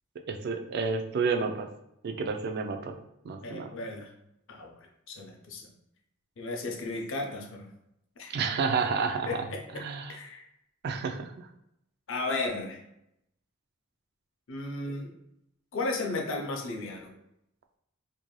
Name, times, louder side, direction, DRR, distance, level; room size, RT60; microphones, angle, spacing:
voice 1, 0.3-1.7 2.0-2.9 3.2-3.7 8.3-9.3 9.8-10.1 10.8-11.5, right 5 dB, 50° right, 5 dB, 0.3 m, -30 dB
voice 2, 3.4-4.1 4.5-5.7 6.4-7.7 8.2-8.3 9.3-10.4 12.1-12.8 14.5-15.1 15.7-17.1, left 2 dB, 65° left, 2 dB, 0.6 m, -35 dB
2.6 x 2.2 x 3.0 m, 0.80 s
head